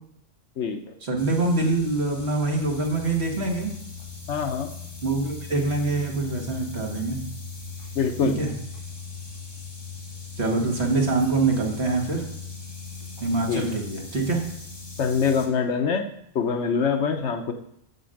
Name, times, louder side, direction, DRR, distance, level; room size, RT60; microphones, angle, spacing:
voice 1, 1.0-3.7 5.0-7.2 8.2-8.5 10.4-12.2 13.2-14.4, right 3 dB, 60° right, 0 dB, 2.0 m, -24 dB
sound 1, 1.2-15.5, left 4 dB, 20° left, 1.5 m, -39 dB
voice 2, 4.3-4.7 8.0-8.4 13.5-13.6 15.0-16.1 16.3-17.5, left 6 dB, 70° left, 6 dB, 1.1 m, -24 dB
7.0 x 6.7 x 6.4 m, 0.73 s
omnidirectional pair, 1.2 m